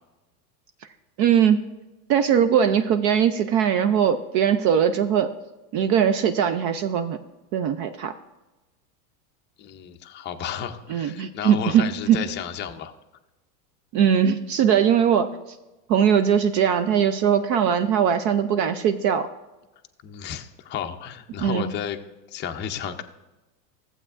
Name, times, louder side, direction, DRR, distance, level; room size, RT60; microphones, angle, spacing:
voice 1, 1.2-1.6 2.1-5.3 5.7-7.2 7.5-8.1 10.9-12.2 13.9-15.6 15.9-19.3 21.4-21.7, right 8 dB, 40° right, 9 dB, 0.4 m, -20 dB
voice 2, 9.6-13.0 20.0-22.0 22.3-23.0, left 9 dB, 25° left, 5 dB, 0.5 m, -33 dB
14.5 x 7.8 x 2.5 m, 1.1 s
supercardioid pair, 120°, 49 cm